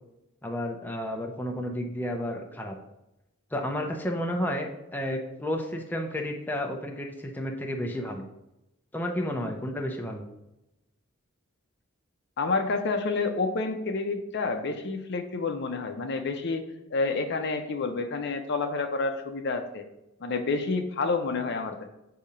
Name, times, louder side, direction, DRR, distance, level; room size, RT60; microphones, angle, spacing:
voice 1, 0.4-2.8 3.5-8.3 8.9-10.3, equal, 10° left, 1 dB, 0.6 m, -31 dB
voice 2, 12.4-16.6 16.9-19.9 20.2-21.9, left 3 dB, 55° left, 6 dB, 0.6 m, -29 dB
6.8 x 2.8 x 4.9 m, 0.91 s
head